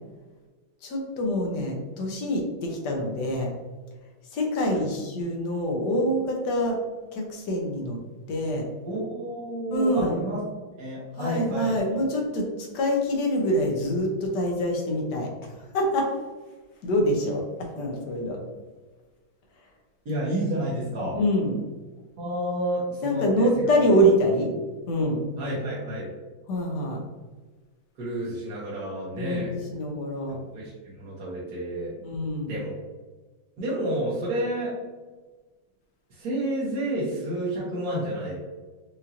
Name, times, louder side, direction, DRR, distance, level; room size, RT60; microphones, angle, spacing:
voice 1, 0.8-3.5 4.3-6.8 7.1-8.0 8.3-8.7 9.7-10.2 11.2-16.1 16.8-18.4 21.1-21.6 23.0-24.5 24.9-25.3 26.5-27.0 29.1-30.4 32.0-32.6, equal, 60° left, 1 dB, 1.3 m, -25 dB
voice 2, 8.8-10.4 10.8-11.9 20.0-21.2 22.2-23.5 25.4-26.1 28.0-29.5 30.3-31.9 32.5-32.7 33.6-34.7 36.1-38.4, right 1 dB, 55° right, -8 dB, 1.4 m, -30 dB
4.9 x 2.6 x 2.8 m, 1.3 s
omnidirectional pair, 2.2 m